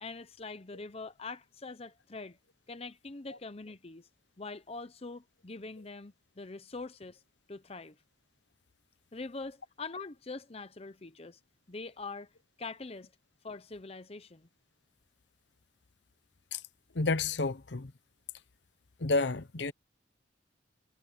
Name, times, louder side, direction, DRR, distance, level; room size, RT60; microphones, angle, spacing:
voice 1, 0.0-2.4 2.7-4.1 4.4-7.2 7.5-8.0 9.1-11.4 11.7-12.3 12.6-13.1 13.4-14.5, left 3 dB, 30° left, 0.8 m, -43 dB
voice 2, 16.9-17.9 19.0-19.7, left 3 dB, 65° left, 0.9 m, -30 dB
head